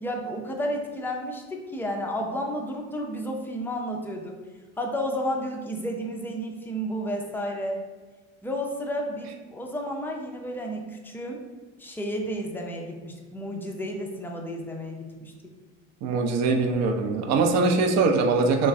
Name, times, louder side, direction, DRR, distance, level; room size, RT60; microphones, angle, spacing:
voice 1, 0.0-4.4 4.8-7.8 8.4-11.4 11.8-15.3, equal, 5° left, 1 dB, 0.4 m, -32 dB
voice 2, 16.0-18.7, right 4 dB, 50° right, 4 dB, 0.6 m, -22 dB
3.1 x 2.1 x 3.4 m, 1.4 s
hypercardioid pair, 90°, 35 cm